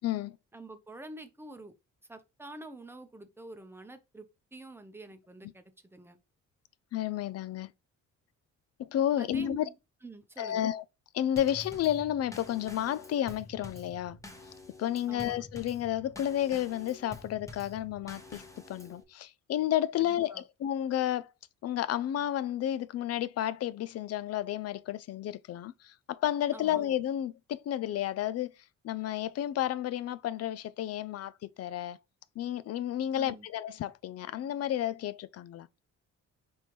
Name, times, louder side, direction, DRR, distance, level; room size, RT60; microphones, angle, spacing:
voice 1, 0.0-0.4 6.9-7.7 8.8-9.7 10.4-10.8 11.1-14.2 14.8-18.4 18.7-21.3 21.6-28.5 28.8-32.0 32.4-35.7, left 11 dB, 55° left, 0.4 m, -31 dB
voice 2, 0.5-1.7 2.1-4.3 4.5-6.2 9.2-9.7 10.0-10.7 15.1-15.4 20.0-20.4 26.5-26.8 33.1-33.5, right 2 dB, 10° right, 0.8 m, -47 dB
Drum kit / Snare drum / Bass drum, 11.4-19.0, left 2 dB, 10° left, 1.0 m, -48 dB
4.3 x 3.4 x 3.0 m
cardioid pair, 90°, 30 cm